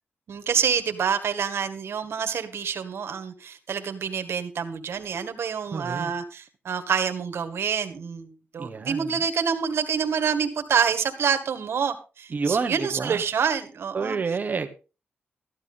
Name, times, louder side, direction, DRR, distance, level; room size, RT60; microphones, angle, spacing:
voice 1, 0.3-8.3 8.5-14.2, right 7 dB, 75° right, 9 dB, 1.8 m, -27 dB
voice 2, 5.7-6.1 8.6-9.2 12.3-13.2 13.9-14.7, right 5 dB, 45° right, 7 dB, 1.4 m, -28 dB
14.0 x 11.0 x 4.0 m, 0.31 s
wide cardioid pair, 130°, 4 cm